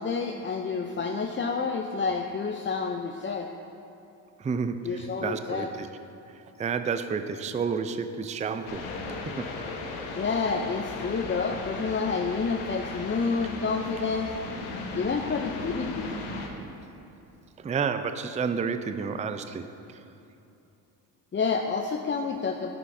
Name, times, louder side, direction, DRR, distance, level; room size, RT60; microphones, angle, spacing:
voice 1, 0.0-3.5 4.8-5.7 10.1-14.3 14.9-16.2 21.3-22.7, left 4 dB, 25° left, 3 dB, 0.6 m, -29 dB
voice 2, 4.4-5.9 6.6-9.5 17.6-19.6, right 5 dB, 15° right, 9 dB, 0.4 m, -30 dB
sound 1, 8.7-16.5, left 3 dB, 75° left, 1.2 m, -36 dB
13.5 x 9.7 x 2.7 m, 2.7 s
hypercardioid pair, 55°, 49 cm